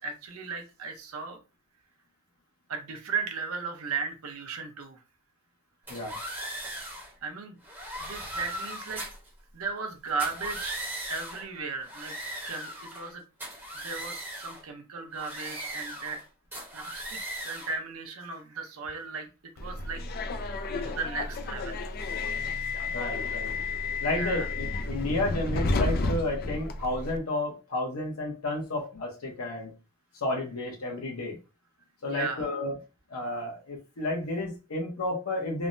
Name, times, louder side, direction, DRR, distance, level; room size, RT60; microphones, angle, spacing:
voice 1, 0.0-1.4 2.7-5.0 7.2-7.6 8.0-9.0 9.5-10.8 11.1-12.1 12.5-13.2 13.7-16.2 16.7-19.3 19.6-20.0 20.8-21.8 24.1-24.5 32.0-32.5, right 4 dB, 80° right, 4 dB, 0.7 m, -36 dB
sound 1, 5.9-7.1 7.6-9.3 10.1-11.4 11.8-13.1 13.4-14.6 15.1-16.2 16.5-17.8, right 1 dB, 10° right, 0.9 m, -38 dB
Subway metro underground, 19.6-27.2, left 3 dB, 45° left, 0.3 m, -31 dB
voice 2, 22.9-23.5 24.0-29.7 30.1-31.4 32.0-32.8 33.1-35.7, left 2 dB, 90° left, 0 dB, 0.8 m, -31 dB
3.3 x 2.1 x 2.5 m, 0.30 s
head